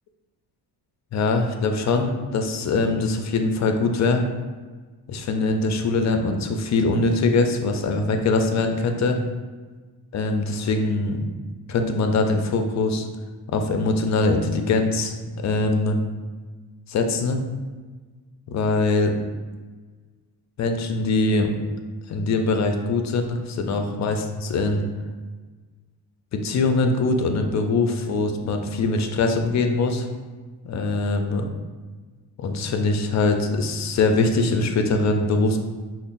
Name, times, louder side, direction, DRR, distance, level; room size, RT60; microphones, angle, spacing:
voice 1, 1.1-4.3 5.1-9.2 10.1-11.3 11.7-13.1 13.5-16.0 16.9-17.4 18.5-19.1 20.6-21.5 22.1-24.8 26.3-30.1 30.6-31.5 32.4-35.6, left 3 dB, 45° left, 5 dB, 0.4 m, -22 dB
5.4 x 2.0 x 2.5 m, 1.4 s
cardioid pair, 105°, 41 cm